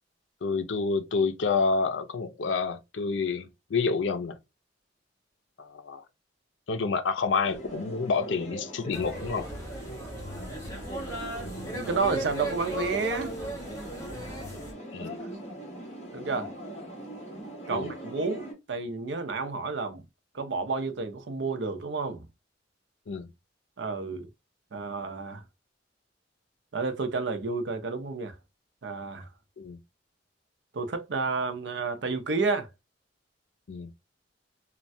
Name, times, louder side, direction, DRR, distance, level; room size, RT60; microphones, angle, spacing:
voice 1, 0.4-4.4 5.6-6.0 6.7-9.5 14.9-15.2 17.7-17.9 23.1-23.3 29.6-29.8 33.7-33.9, left 4 dB, 85° left, 0.5 m, -28 dB
sound 1, 7.4-18.5, right 1 dB, 35° left, 1.5 m, -40 dB
sound 2, 8.9-14.7, right 1 dB, 20° left, 1.0 m, -37 dB
voice 2, 11.7-13.3 16.1-16.5 17.7-20.0 20.3-22.3 23.8-24.3 24.7-25.4 26.7-28.3 28.8-29.3 30.7-32.7, right 4 dB, 70° right, 0.6 m, -30 dB
3.2 x 2.2 x 2.6 m
head